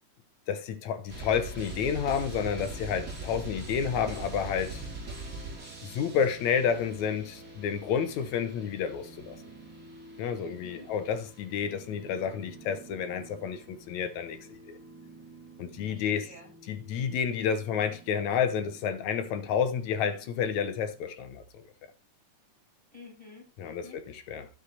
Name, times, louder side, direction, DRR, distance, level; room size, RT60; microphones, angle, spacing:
voice 1, 0.5-4.8 5.8-9.4 10.2-14.4 14.7-14.8 15.6-16.3 16.7-21.4 23.6-23.8 24.3-24.5, left 7 dB, 70° left, 2.0 m, -30 dB
sound 1, 1.1-21.0, right 2 dB, 30° right, 3.3 m, -44 dB
voice 2, 10.4-10.9 15.9-16.5 22.9-24.3, left 3 dB, 10° right, 6.4 m, -51 dB
12.5 x 6.5 x 3.9 m
omnidirectional pair, 3.9 m